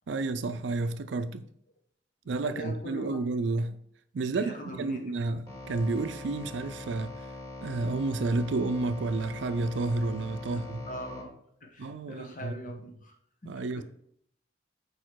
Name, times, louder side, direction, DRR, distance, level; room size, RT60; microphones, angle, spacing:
voice 1, 0.1-1.5 2.3-3.8 4.1-7.1 7.6-10.9 11.8-12.5 13.4-13.8, right 3 dB, 80° right, 0.4 m, -31 dB
voice 2, 2.4-3.2 4.2-5.3 10.5-10.6 10.9-11.3 11.6-13.1 13.4-13.8, equal, 45° left, 1.2 m, -42 dB
sound 1, 5.5-11.2, left 2 dB, 20° left, 2.2 m, -42 dB
6.5 x 4.9 x 4.6 m
head